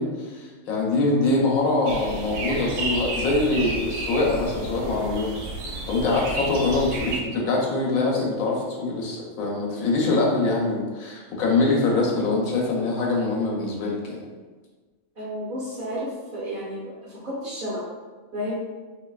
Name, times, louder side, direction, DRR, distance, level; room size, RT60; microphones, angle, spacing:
voice 1, 0.0-5.3 5.9-14.2, left 3 dB, 90° left, -1 dB, 1.1 m, -24 dB
sound 1, 1.9-7.2, right 2 dB, 80° right, 1.0 m, -31 dB
voice 2, 15.2-17.8 18.3-18.5, equal, 45° right, -7 dB, 0.9 m, -32 dB
3.0 x 2.7 x 2.3 m, 1.3 s
omnidirectional pair, 1.4 m